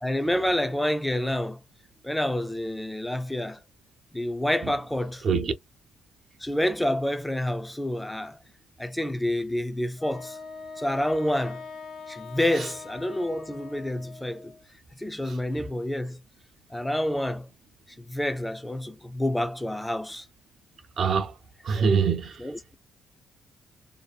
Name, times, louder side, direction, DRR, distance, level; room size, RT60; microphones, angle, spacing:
voice 1, 0.0-1.6 2.0-3.6 4.1-5.2 6.4-8.4 8.8-10.4 10.8-11.6 12.1-14.5 15.0-16.2 16.7-17.5 18.1-20.3 22.4-22.8, left 1 dB, 5° left, 0.3 m, -28 dB
Wind instrument woodwind instrument, 10.0-14.6, left 4 dB, 50° left, 0.7 m, -42 dB
voice 2, 21.0-21.3 21.7-22.3, right 6 dB, 60° right, 0.5 m, -23 dB
2.6 x 2.3 x 2.2 m
cardioid pair, 90°, 0 cm